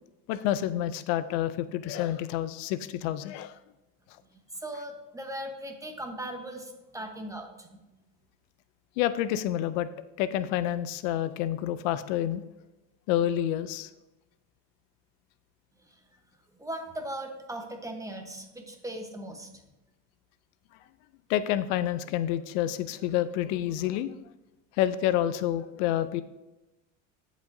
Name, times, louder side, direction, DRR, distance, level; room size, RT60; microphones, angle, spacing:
voice 1, 0.3-3.6 9.0-9.9 10.2-12.4 13.1-13.9 21.3-24.2 24.8-26.2, left 12 dB, 80° left, 14 dB, 0.6 m, -28 dB
voice 2, 4.5-7.8 16.6-19.5, right 1 dB, 10° right, 3 dB, 1.1 m, -38 dB
14.5 x 5.1 x 2.7 m, 1.0 s
supercardioid pair, 115°, 38 cm